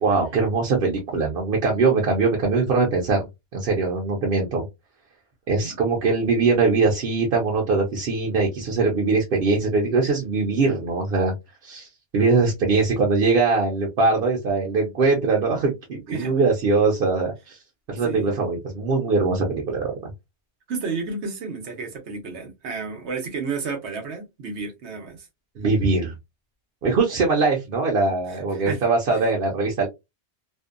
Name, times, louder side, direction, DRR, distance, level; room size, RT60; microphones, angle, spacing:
voice 1, 0.0-3.3 3.5-4.6 5.5-11.3 11.6-11.9 12.1-17.6 17.9-20.1 25.6-26.1 26.8-29.9, right 3 dB, 60° right, 0.8 m, -22 dB
voice 2, 18.0-18.4 20.7-25.3 28.3-28.8, right 4 dB, 85° right, 1.1 m, -32 dB
2.6 x 2.1 x 2.4 m
omnidirectional pair, 1.1 m